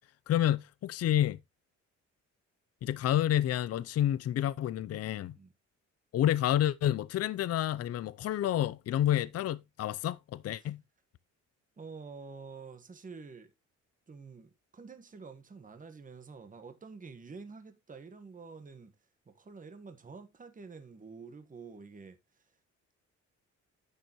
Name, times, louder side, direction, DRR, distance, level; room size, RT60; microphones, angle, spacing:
voice 1, 0.3-1.4 2.8-5.4 6.1-10.8, left 12 dB, 55° left, 0.5 m, -29 dB
voice 2, 11.8-13.5 14.1-18.9 19.3-22.5, right 4 dB, 25° right, 1.4 m, -48 dB
10.5 x 6.7 x 3.0 m
cardioid pair, 90°, 30 cm